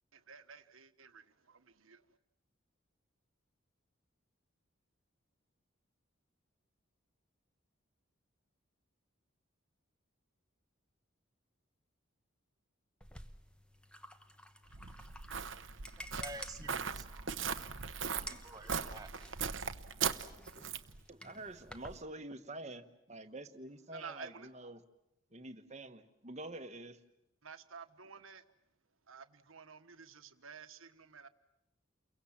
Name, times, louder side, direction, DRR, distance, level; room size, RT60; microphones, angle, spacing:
voice 1, 0.1-2.2 23.9-24.5 27.4-28.4 29.1-31.3, right 6 dB, 80° right, 1.4 m, -52 dB
sound 1, 13.0-22.0, equal, 5° left, 1.0 m, -53 dB
Walk footsteps, 14.7-21.0, right 6 dB, 65° right, 1.0 m, -39 dB
voice 2, 16.2-17.3 18.0-19.1 21.2-21.4, right 1 dB, 20° right, 1.5 m, -50 dB
voice 3, 21.1-24.8 25.3-27.0, right 2 dB, 35° right, 1.4 m, -47 dB
29.5 x 23.0 x 7.4 m
head